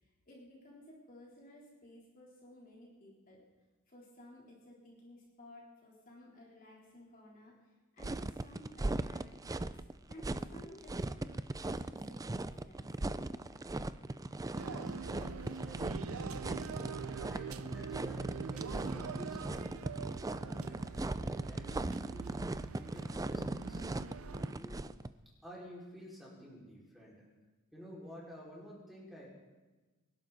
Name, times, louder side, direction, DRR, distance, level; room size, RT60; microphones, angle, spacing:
voice 1, 0.0-3.4 3.9-9.3 9.5-9.8 10.1-12.9, left 1 dB, 40° left, -4 dB, 3.5 m, -56 dB
sound 1, 8.0-25.1, right 2 dB, 15° right, 0.4 m, -38 dB
voice 2, 14.5-20.0 20.4-22.4 22.8-24.9 25.4-27.2 27.7-29.3, equal, ahead, -6 dB, 5.1 m, -52 dB
sound 2, 14.5-24.5, right 5 dB, 65° right, 0.6 m, -44 dB
25.5 x 12.0 x 4.1 m, 1.2 s
head